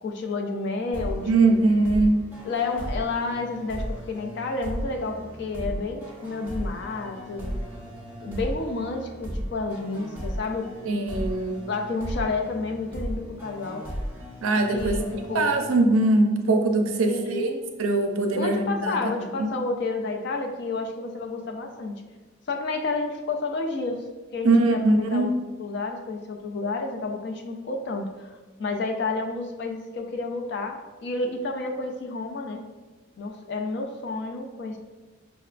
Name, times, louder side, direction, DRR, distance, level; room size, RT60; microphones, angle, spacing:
voice 1, 0.0-1.6 2.4-7.6 8.2-10.7 11.7-13.9 14.7-15.5 17.1-17.6 18.3-22.0 22.5-24.0 24.3-25.3 25.6-28.3 28.6-32.6 33.2-34.8, left 3 dB, 55° left, 4 dB, 0.4 m, -30 dB
sound 1, 0.9-16.4, equal, 10° right, 0.6 m, -36 dB
voice 2, 1.3-2.2 10.9-11.6 14.4-15.0 15.3-17.5 17.8-19.0 19.4-19.5 24.4-25.4, right 2 dB, 85° right, 4 dB, 0.4 m, -21 dB
5.2 x 2.2 x 2.4 m, 1.2 s
head